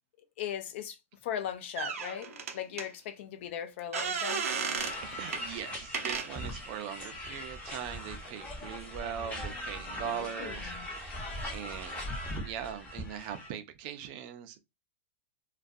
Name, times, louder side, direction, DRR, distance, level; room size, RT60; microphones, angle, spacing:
voice 1, 0.4-1.0 1.2-4.5 10.1-10.9, left 9 dB, 60° left, 0.4 m, -38 dB
sound 1, 1.8-2.9 3.9-5.0 5.3-5.5 5.9-6.3, right 5 dB, 90° right, 0.6 m, -33 dB
sound 2, 4.8-13.5, left 1 dB, 15° left, 0.7 m, -40 dB
voice 2, 5.0-11.1 11.5-12.0 12.4-14.6, right 9 dB, 45° right, 0.4 m, -40 dB
2.4 x 2.2 x 2.5 m
hypercardioid pair, 140°, 7 cm